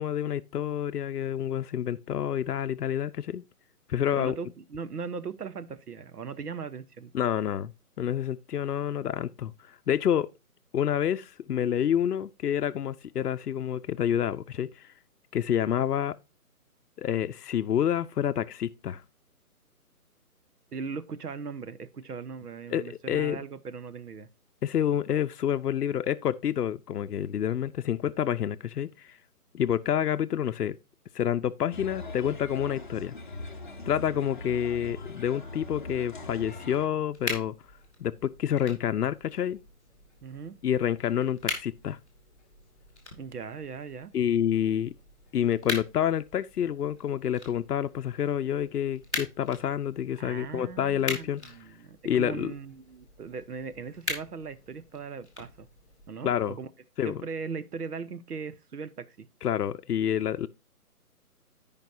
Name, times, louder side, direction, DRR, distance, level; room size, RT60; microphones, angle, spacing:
voice 1, 0.0-3.4 3.9-4.4 7.1-7.7 8.0-10.3 10.7-14.9 15.3-16.2 17.0-19.0 22.7-23.4 24.6-29.2 29.5-30.8 31.1-33.1 33.9-37.5 38.0-39.6 40.6-42.0 44.1-44.9 45.3-51.4 52.0-52.5 56.2-56.5 57.0-57.2 59.4-60.5, left 9 dB, 85° left, 0.6 m, -28 dB
voice 2, 4.1-7.1 20.7-24.3 40.2-40.5 43.2-44.1 50.2-55.7 56.1-56.7 57.0-59.3, right 5 dB, 80° right, 1.0 m, -39 dB
sound 1, 31.7-36.9, left 2 dB, 35° left, 0.6 m, -40 dB
sound 2, 37.1-56.1, left 3 dB, 5° right, 0.8 m, -41 dB
14.0 x 5.2 x 2.6 m
hypercardioid pair, 165°, 46 cm